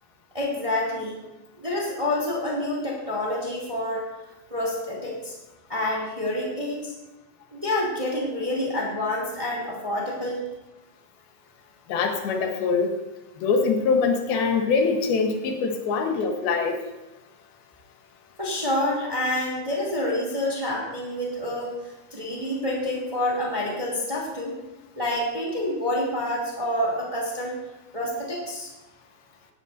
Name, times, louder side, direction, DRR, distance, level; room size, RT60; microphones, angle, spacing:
voice 1, 0.3-1.2 1.6-4.1 4.5-5.3 5.7-6.9 7.5-10.4 18.4-21.7 22.1-24.5 25.0-27.6 27.9-28.7, left 1 dB, 10° right, -3 dB, 1.9 m, -28 dB
voice 2, 11.9-12.9 13.4-16.8, left 4 dB, 80° left, 3 dB, 3.1 m, -23 dB
16.5 x 12.0 x 2.6 m, 1.0 s
omnidirectional pair, 4.4 m